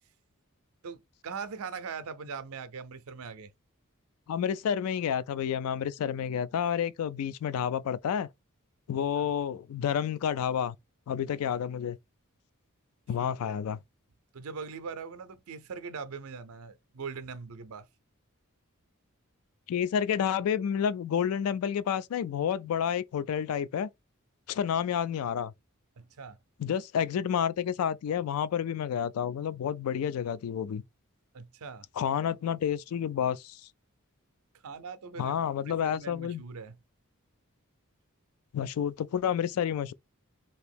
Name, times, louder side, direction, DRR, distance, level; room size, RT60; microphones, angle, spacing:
voice 1, 0.8-3.5 9.2-9.3 14.3-17.9 26.0-26.4 31.3-31.9 34.6-35.3 35.7-36.8, right 5 dB, 75° right, 0.5 m, -41 dB
voice 2, 4.3-8.3 8.9-10.8 11.1-12.0 13.1-13.8 19.7-23.9 24.5-25.5 26.6-30.8 32.0-33.6 35.2-36.4 38.5-39.9, left 8 dB, 80° left, 0.3 m, -30 dB
2.9 x 2.6 x 3.3 m
head